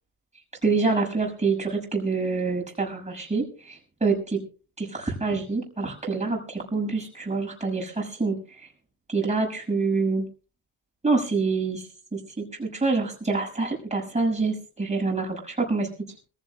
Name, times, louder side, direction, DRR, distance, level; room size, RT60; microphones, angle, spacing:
voice 1, 0.6-4.4 4.8-8.7 9.1-10.3 11.0-15.9, right 3 dB, 15° right, 0 dB, 6.0 m, -26 dB
27.0 x 15.0 x 2.2 m, 0.36 s
cardioid pair, 105°, 45 cm